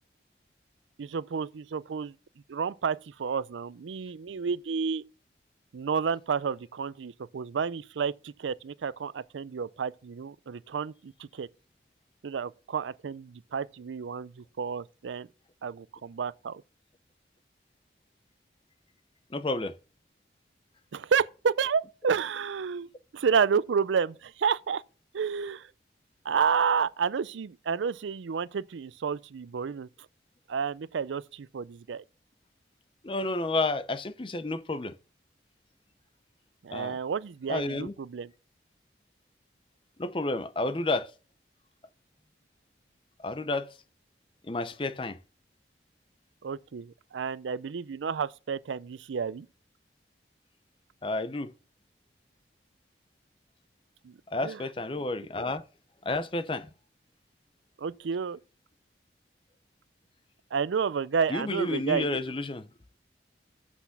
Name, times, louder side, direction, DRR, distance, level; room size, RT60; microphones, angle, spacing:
voice 1, 1.0-2.1 2.5-5.0 5.7-11.5 12.2-15.3 15.6-16.6 20.9-24.8 25.1-25.7 26.2-29.9 30.5-32.0 36.6-38.3 46.4-49.5 54.0-54.2 54.4-54.6 57.8-58.4 60.5-62.2, right 6 dB, 90° right, 0.4 m, -30 dB
voice 2, 19.3-19.8 33.0-35.0 36.7-37.0 37.5-37.9 40.0-41.1 43.2-43.8 44.4-45.2 51.0-51.5 54.3-55.6 56.0-56.7 61.3-62.7, left 2 dB, 30° left, 0.6 m, -31 dB
8.0 x 6.1 x 5.8 m
head